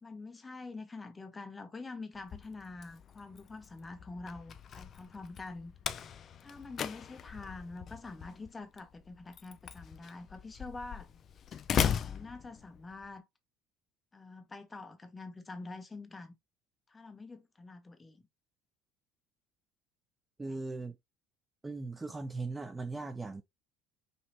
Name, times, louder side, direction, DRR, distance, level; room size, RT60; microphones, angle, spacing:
voice 1, 0.0-5.7 6.4-11.1 11.9-13.3 14.1-16.4 16.9-18.3, left 3 dB, 15° left, 0.9 m, -46 dB
Slam, 2.1-13.1, left 8 dB, 40° left, 0.5 m, -39 dB
voice 2, 20.4-21.0 21.6-23.4, right 3 dB, 15° right, 0.6 m, -38 dB
5.3 x 3.0 x 2.9 m
supercardioid pair, 115°, 0 cm